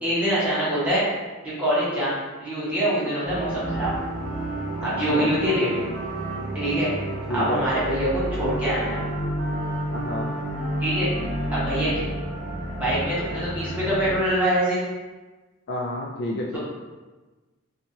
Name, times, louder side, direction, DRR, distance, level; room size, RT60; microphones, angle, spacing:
voice 1, 0.0-1.0 1.4-2.1 2.4-3.9 4.8-5.8 6.5-6.9 7.3-9.0 10.8-11.1 11.5-12.1 12.7-14.8, right 1 dB, 5° right, -10 dB, 0.9 m, -24 dB
Wind instrument woodwind instrument, 3.0-12.0, right 1 dB, 80° right, 0.6 m, -36 dB
sound 1, 3.2-14.2, right 1 dB, 80° left, 0.9 m, -31 dB
voice 2, 7.3-7.6 9.9-10.3 15.7-16.6, left 1 dB, 50° left, -1 dB, 0.3 m, -29 dB
2.8 x 2.3 x 2.7 m, 1.2 s
head